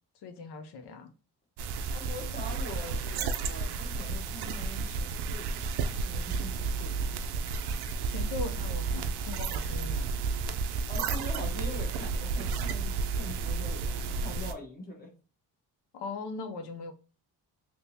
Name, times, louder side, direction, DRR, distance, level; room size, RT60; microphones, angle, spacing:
voice 1, 0.2-1.1 8.0-10.1 15.9-16.9, left 4 dB, 70° left, 0.7 m, -40 dB
sound 1, 1.6-14.5, right 4 dB, 65° right, 0.5 m, -32 dB
voice 2, 1.9-7.1 10.9-15.1, left 1 dB, 20° left, 1.1 m, -43 dB
3.6 x 2.9 x 2.7 m
cardioid pair, 175°, 42 cm